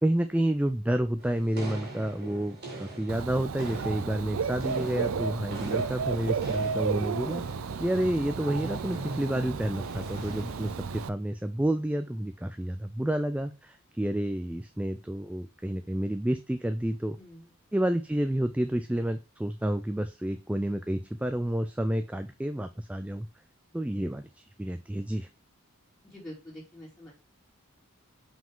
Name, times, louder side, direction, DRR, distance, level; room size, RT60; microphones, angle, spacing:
voice 1, 0.0-7.4 7.8-17.2 17.7-23.3 23.7-25.3, right 1 dB, 5° right, 9 dB, 0.3 m, -30 dB
sound 1, 1.2-10.7, right 2 dB, 50° right, 2.4 m, -42 dB
Dog / Bird, 3.1-11.1, right 5 dB, 75° right, 0.5 m, -33 dB
voice 2, 17.2-17.5 26.0-27.1, equal, 10° left, -8 dB, 2.5 m, -46 dB
5.7 x 5.0 x 3.6 m, 0.29 s
head